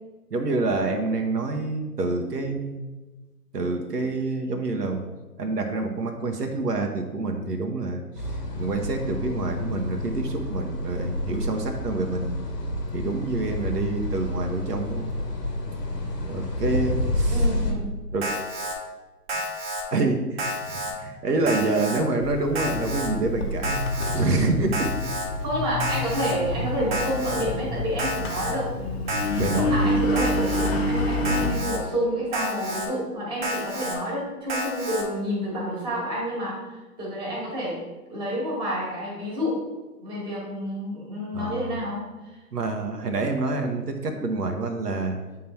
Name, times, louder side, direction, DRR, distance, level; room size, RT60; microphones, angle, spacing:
voice 1, 0.3-2.8 3.5-5.0 5.4-8.0 8.6-12.4 12.9-15.1 15.7-15.8 16.2-17.4 18.1-18.3 19.9-20.4 20.7-23.8 24.1-24.9 26.2-26.3 29.4-29.8 41.3-41.7 42.5-45.2, right 3 dB, 75° right, 3 dB, 1.1 m, -27 dB
sound 1, 8.2-17.7, left 1 dB, 85° left, 1.5 m, -29 dB
voice 2, 17.3-17.9 25.4-29.2 29.7-37.8 38.1-39.6 40.0-42.1, equal, 10° right, -5 dB, 1.7 m, -29 dB
Alarm, 18.2-18.7 19.3-19.8 20.4-20.9 21.5-22.0 22.5-23.1 23.6-24.2 24.7-25.3 25.8-26.3 26.9-27.4 28.0-28.5 29.1-29.6 30.2-30.7 31.2-31.8 32.3-32.9 33.4-34.0 34.5-35.0, equal, 30° right, 1.1 m, -30 dB
Engine, 22.2-31.5, left 1 dB, 40° left, 1.0 m, -28 dB
8.4 x 3.8 x 4.4 m, 1.2 s
hypercardioid pair, 140°, 48 cm